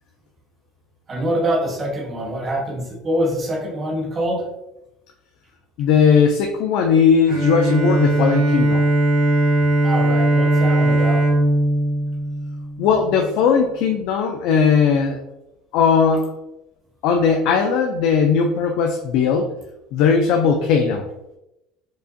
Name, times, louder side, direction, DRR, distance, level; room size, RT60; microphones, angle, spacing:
voice 1, 1.1-4.5 9.8-11.2, right 1 dB, 20° right, 0 dB, 0.7 m, -24 dB
voice 2, 5.8-8.9 12.8-15.2 15.7-16.3 17.0-19.5 19.9-21.1, left 6 dB, 55° left, 3 dB, 0.3 m, -18 dB
Bowed string instrument, 7.3-13.2, right 1 dB, 80° right, 1.4 m, -19 dB
4.6 x 2.5 x 2.6 m, 0.91 s
cardioid pair, 170°, 0 cm